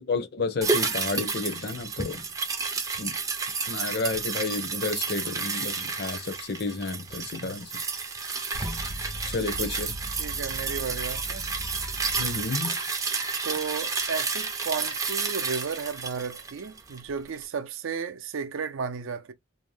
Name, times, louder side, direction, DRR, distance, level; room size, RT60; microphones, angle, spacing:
voice 1, 0.0-2.2 3.0-3.2 3.7-7.7 9.3-9.9 12.2-12.7, left 3 dB, 55° left, 0.5 m, -31 dB
sound 1, 0.6-17.1 17.4-17.5, right 4 dB, 15° right, 0.3 m, -31 dB
voice 2, 7.3-7.6 10.1-11.4 13.4-19.3, right 6 dB, 85° right, 0.5 m, -33 dB
sound 2, 8.5-12.6, equal, 75° left, 0.8 m, -39 dB
2.6 x 2.0 x 3.1 m
head